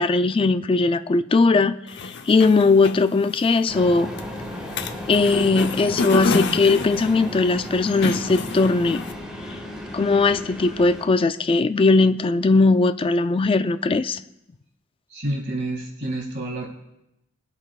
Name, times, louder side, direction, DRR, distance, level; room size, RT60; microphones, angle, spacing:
voice 1, 0.0-1.8 2.0-4.1 5.1-9.0 9.9-14.2, left 3 dB, 25° left, 12 dB, 0.3 m, -19 dB
sound 1, 1.9-9.1, left 3 dB, 55° left, 0.7 m, -30 dB
sound 2, 3.7-11.1, left 1 dB, 5° right, 1.6 m, -35 dB
voice 2, 15.1-16.7, right 1 dB, 55° right, -1 dB, 2.4 m, -29 dB
22.5 x 8.1 x 2.4 m, 0.88 s
head